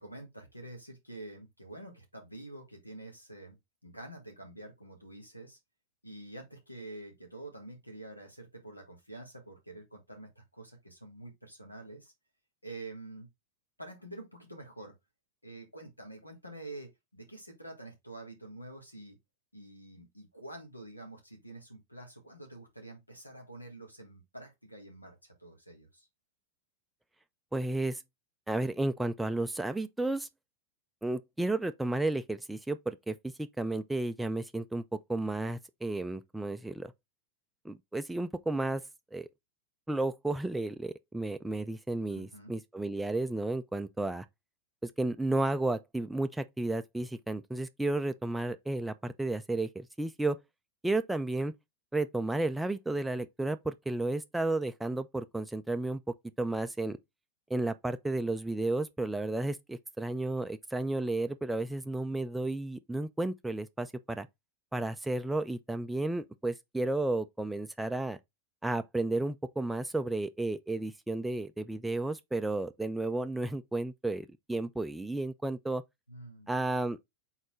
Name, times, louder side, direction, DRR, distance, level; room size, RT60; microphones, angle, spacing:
voice 1, 0.0-3.6 3.8-5.6 6.0-12.1 12.6-13.3 13.8-14.9 15.4-19.2 19.5-26.1 42.1-42.5 76.1-76.5, right 2 dB, 85° left, 1.5 m, -47 dB
voice 2, 27.5-28.0 28.5-30.3 31.0-34.8 35.1-36.9 37.6-38.8 39.1-39.3 39.9-44.3 44.8-50.4 50.8-51.5 51.9-56.0 56.4-57.0 57.5-64.3 64.7-68.2 68.6-75.8 76.5-77.0, right 2 dB, 5° right, 0.3 m, -32 dB
4.1 x 3.9 x 3.1 m
figure-of-eight pair, 90°, 0 cm